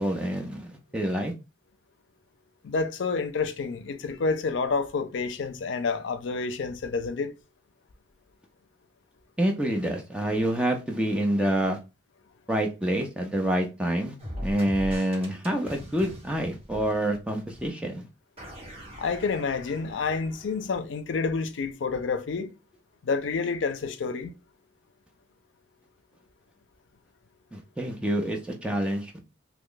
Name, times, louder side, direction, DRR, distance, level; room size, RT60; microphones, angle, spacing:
voice 1, 0.0-1.3 9.4-11.8 12.5-14.2 14.4-18.1 27.5-29.2, right 1 dB, 5° right, 0.5 m, -27 dB
voice 2, 2.6-7.3 19.0-22.5 23.0-24.3, left 4 dB, 90° left, 0.4 m, -29 dB
sound 1, 14.2-17.3 17.5-17.7 18.4-20.7, equal, 35° right, 1.5 m, -40 dB
2.9 x 2.2 x 3.7 m
head